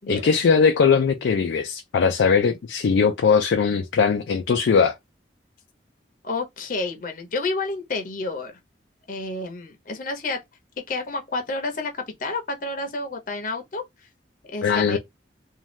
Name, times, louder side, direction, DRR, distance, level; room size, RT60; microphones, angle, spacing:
voice 1, 0.1-5.0 14.6-15.0, left 5 dB, 85° left, 0.4 m, -20 dB
voice 2, 6.2-8.6 9.1-10.4 10.9-13.8 14.5-15.0, left 3 dB, 50° left, 0.6 m, -30 dB
2.6 x 2.3 x 3.1 m
head